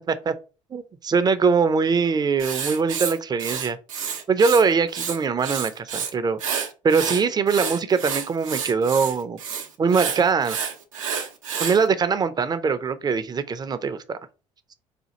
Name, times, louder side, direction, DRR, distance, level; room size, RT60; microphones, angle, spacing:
voice 1, 0.7-3.8 4.3-6.4 6.8-9.4 9.8-10.6 11.6-14.2, right 5 dB, 25° right, 0.5 m, -22 dB
Writing, 2.4-4.6 4.9-6.1 6.4-11.8, right 7 dB, 85° right, 0.6 m, -29 dB
4.2 x 2.2 x 2.8 m
hypercardioid pair, 65°, 16 cm